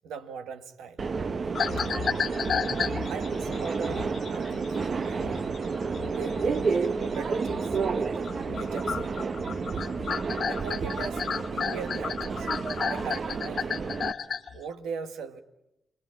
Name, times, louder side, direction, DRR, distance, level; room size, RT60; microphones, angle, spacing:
voice 1, 0.0-1.1 1.8-1.9 3.1-4.8 5.0-5.4 6.1-9.2 10.5-12.5 12.9-13.8 14.5-15.4, right 6 dB, 90° right, 9 dB, 1.4 m, -40 dB
Subway metro underground, 1.0-14.1, right 5 dB, 60° right, 1.1 m, -30 dB
sound 1, 1.5-8.0 8.2-14.6, left 6 dB, 70° left, 1.3 m, -33 dB
29.5 x 21.5 x 8.8 m, 0.86 s
supercardioid pair, 40°, 0 cm